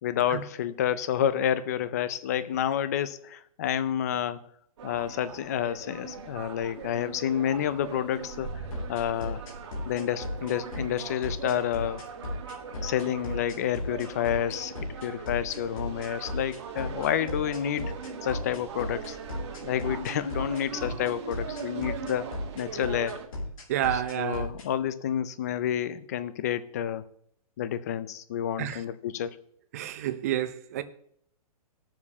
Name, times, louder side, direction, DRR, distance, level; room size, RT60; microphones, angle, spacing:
voice 1, 0.0-4.4 4.8-8.5 8.9-9.4 9.9-12.0 12.8-14.7 15.0-17.9 18.2-19.2 19.6-22.3 22.5-23.2 23.9-27.0 27.6-29.4, left 10 dB, 25° left, 0.4 m, -29 dB
sound 1, 4.8-23.3, right 5 dB, 45° right, 1.3 m, -40 dB
sound 2, 8.7-24.7, left 1 dB, 60° left, 2.7 m, -35 dB
voice 2, 23.7-24.5 28.6-28.8 29.7-30.8, right 11 dB, 25° right, 0.5 m, -29 dB
20.5 x 7.2 x 2.8 m
hypercardioid pair, 170°, 19 cm